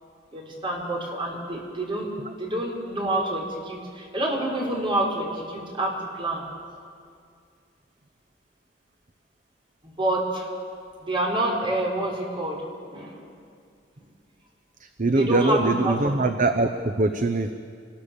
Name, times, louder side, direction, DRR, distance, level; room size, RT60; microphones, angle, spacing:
voice 1, 0.3-2.1 2.4-6.4 10.0-10.5 11.0-12.6 12.9-13.2 15.1-16.3, right 1 dB, 30° right, -2 dB, 5.4 m, -27 dB
voice 2, 15.0-17.5, right 2 dB, 45° right, 8 dB, 0.9 m, -23 dB
28.5 x 20.5 x 7.3 m, 2.2 s
head